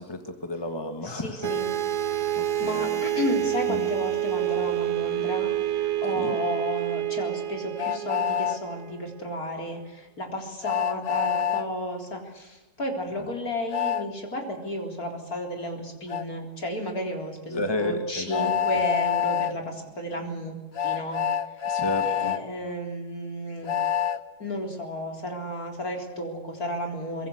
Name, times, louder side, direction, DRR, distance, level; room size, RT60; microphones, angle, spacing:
voice 1, 0.0-1.5 2.4-3.0 3.7-3.9 6.1-6.4 13.2-13.3 17.5-18.8 21.6-22.4, left 2 dB, 15° left, 6 dB, 2.1 m, -32 dB
voice 2, 1.0-1.7 2.1-21.2 22.1-23.8 24.4-27.3, left 1 dB, 65° left, 3 dB, 4.5 m, -33 dB
sound 1, 1.4-9.2, right 12 dB, 80° right, 1.5 m, -28 dB
Train, 7.8-8.6 10.6-11.7 13.7-14.0 16.1-16.2 18.3-19.5 20.7-22.4 23.7-24.2, left 8 dB, 45° left, 1.2 m, -26 dB
24.0 x 22.0 x 8.1 m, 1.1 s
omnidirectional pair, 1.7 m